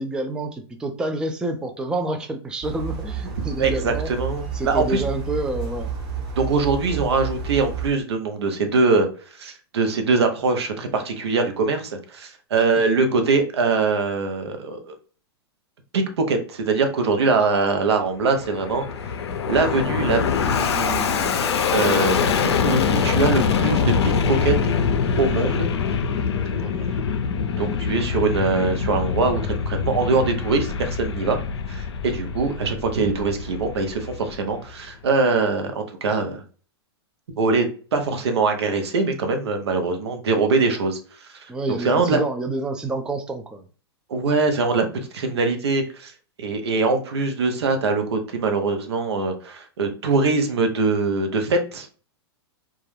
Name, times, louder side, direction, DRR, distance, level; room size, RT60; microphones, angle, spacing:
voice 1, 0.0-4.1 4.5-5.9 26.6-27.0 41.5-43.6, right 2 dB, 5° right, 5 dB, 0.3 m, -28 dB
sound 1, 2.6-7.9, right 6 dB, 40° right, 1.0 m, -30 dB
voice 2, 3.6-5.0 6.4-9.1 9.4-14.9 15.9-18.9 19.5-21.4 21.7-24.5 25.2-25.7 27.6-31.4 31.7-36.4 37.4-41.3 41.8-42.2 44.1-44.9 45.1-46.1 46.4-51.9, right 4 dB, 80° right, 6 dB, 0.7 m, -23 dB
Fixed-wing aircraft airplane, 18.1-34.7, left 6 dB, 80° left, 0.4 m, -24 dB
2.3 x 2.1 x 3.1 m, 0.39 s
hypercardioid pair, 110°, 14 cm